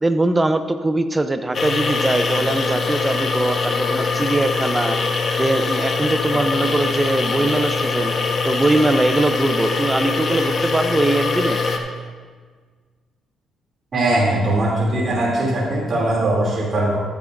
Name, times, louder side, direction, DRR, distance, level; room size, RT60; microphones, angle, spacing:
voice 1, 0.0-5.0 5.4-8.1 8.4-11.6, right 2 dB, 15° right, 9 dB, 0.6 m, -21 dB
sound 1, 1.5-11.8, left 4 dB, 45° left, 1.2 m, -22 dB
voice 2, 13.9-17.0, right 1 dB, 45° right, -5 dB, 2.9 m, -20 dB
14.0 x 9.4 x 2.6 m, 1.5 s
cardioid pair, 90°, 0 cm